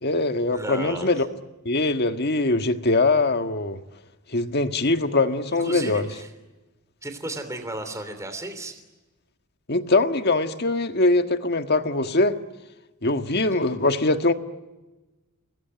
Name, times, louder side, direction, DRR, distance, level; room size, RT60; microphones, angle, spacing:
voice 1, 0.0-1.3 1.6-3.8 4.3-6.1 9.7-12.4 13.0-14.3, left 2 dB, 45° left, 8 dB, 1.6 m, -22 dB
voice 2, 0.5-1.2 5.6-6.3 7.0-8.8, right 1 dB, 15° right, 7 dB, 3.2 m, -34 dB
29.0 x 21.5 x 9.5 m, 1.1 s
head